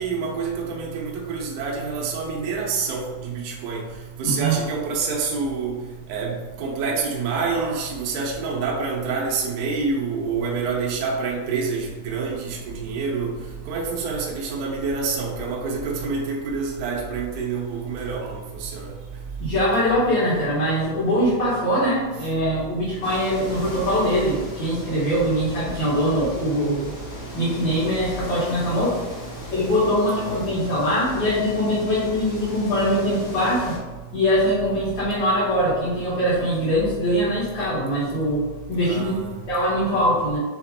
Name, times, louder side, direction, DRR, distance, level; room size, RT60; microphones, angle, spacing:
voice 1, 0.0-3.8 4.2-5.8 6.1-13.3 13.7-18.9 30.2-30.5 38.8-39.3, right 4 dB, 75° right, -3 dB, 1.8 m, -27 dB
voice 2, 4.2-4.6 19.4-26.9 27.3-29.0 29.5-33.8 34.1-38.4 38.7-39.1 39.5-40.4, equal, 55° left, -11 dB, 2.1 m, -22 dB
sound 1, 23.0-33.8, left 1 dB, 85° left, 1.0 m, -38 dB
6.4 x 2.5 x 2.8 m, 1.3 s
omnidirectional pair, 4.6 m